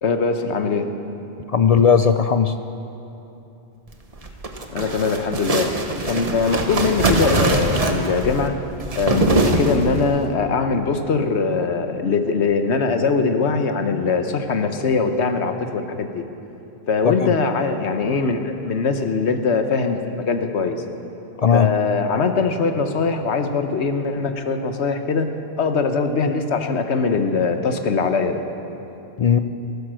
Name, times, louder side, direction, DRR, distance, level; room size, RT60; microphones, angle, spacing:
voice 1, 0.0-0.9 4.7-8.6 9.0-16.2 16.9-20.8 21.5-28.4, left 4 dB, 80° left, 7 dB, 1.2 m, -22 dB
voice 2, 1.5-2.5 17.0-17.3 21.4-21.7 29.2-29.4, left 7 dB, 55° left, 9 dB, 0.4 m, -16 dB
sound 1, 4.1-10.2, right 2 dB, 35° right, 1.1 m, -22 dB
14.5 x 14.0 x 6.3 m, 2.9 s
omnidirectional pair, 1.1 m